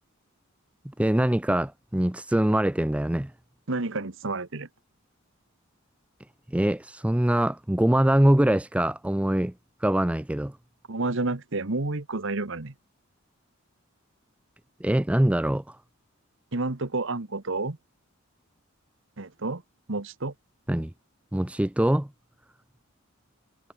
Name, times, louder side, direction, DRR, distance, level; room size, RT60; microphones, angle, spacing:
voice 1, 1.0-3.3 6.5-9.5 9.8-10.5 14.8-15.8 20.7-20.9 21.3-22.1, right 1 dB, 5° right, 0.5 m, -23 dB
voice 2, 3.7-4.7 10.9-12.7 16.5-17.8 19.2-19.6 19.9-20.3, right 3 dB, 65° right, 1.4 m, -30 dB
head